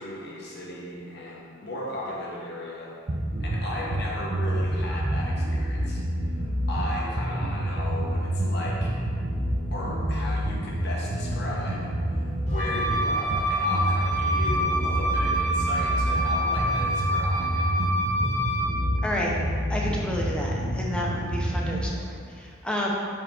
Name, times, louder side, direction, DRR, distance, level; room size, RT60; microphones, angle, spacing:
voice 1, 0.0-3.0 3.4-9.0 9.7-17.7, left 1 dB, 55° left, -4 dB, 1.2 m, -36 dB
sound 1, 3.1-21.8, right 1 dB, 35° right, 0.5 m, -28 dB
Wind instrument woodwind instrument, 12.5-18.8, equal, 35° left, 1.1 m, -27 dB
voice 2, 19.0-19.4 19.7-22.9, left 1 dB, 5° left, -3 dB, 0.6 m, -30 dB
5.7 x 4.6 x 3.7 m, 2.2 s
head